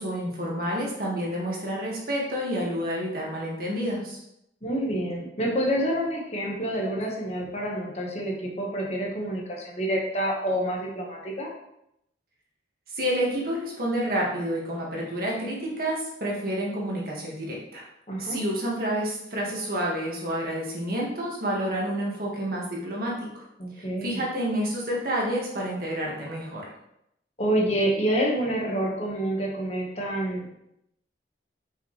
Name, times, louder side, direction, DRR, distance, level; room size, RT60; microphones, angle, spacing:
voice 1, 0.0-4.2 12.9-17.8 18.2-23.4 23.8-26.7, equal, 55° right, -3 dB, 1.8 m, -29 dB
voice 2, 4.6-11.5 18.1-18.4 23.6-24.2 27.4-30.5, right 1 dB, 35° left, -2 dB, 1.4 m, -28 dB
6.1 x 5.5 x 3.2 m, 0.79 s
head